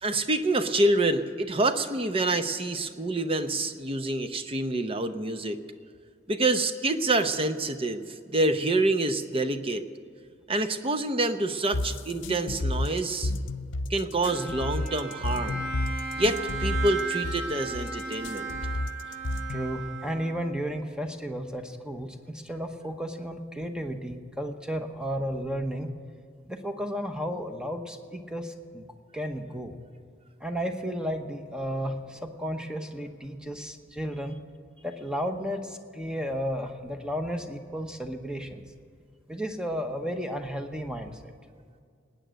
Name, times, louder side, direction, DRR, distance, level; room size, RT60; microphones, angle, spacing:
voice 1, 0.0-5.6 6.3-9.8 10.5-13.3 13.9-15.6 16.2-18.5, right 2 dB, 30° right, 9 dB, 0.8 m, -27 dB
sound 1, 11.7-19.7, left 2 dB, 70° left, 0.6 m, -31 dB
Bowed string instrument, 14.2-20.6, right 4 dB, 80° right, 2.8 m, -36 dB
voice 2, 19.5-25.9 26.5-28.9 29.1-29.8 30.4-34.4 34.8-38.6 39.3-41.1, equal, 5° right, 6 dB, 1.0 m, -33 dB
19.0 x 9.1 x 6.4 m, 2.2 s
head